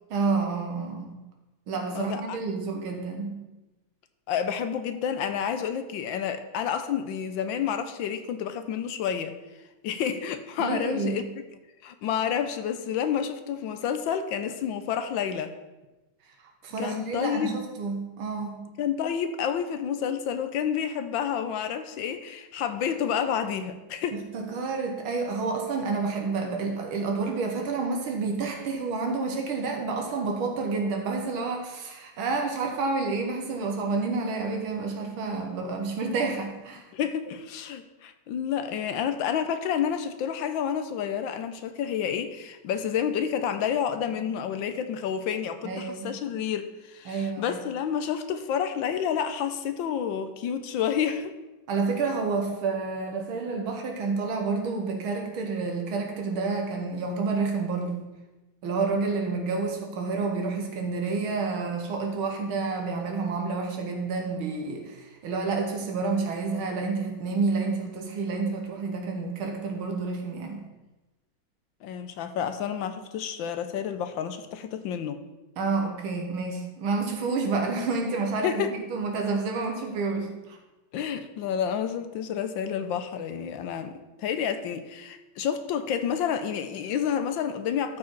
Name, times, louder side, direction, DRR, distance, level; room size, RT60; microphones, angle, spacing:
voice 1, 0.1-1.2 1.7-3.4 10.6-11.3 16.6-18.6 24.1-36.8 45.6-46.1 47.1-47.6 51.7-58.1 58.6-70.6 75.6-80.6, right 4 dB, 80° right, 2 dB, 2.0 m, -29 dB
voice 2, 1.9-2.7 4.3-9.4 9.8-11.2 11.8-15.5 16.8-17.5 18.8-24.2 36.9-51.3 71.8-75.2 78.4-78.7 80.9-88.0, left 8 dB, 75° left, 9 dB, 1.3 m, -29 dB
13.0 x 4.7 x 4.5 m, 1.1 s
omnidirectional pair, 2.2 m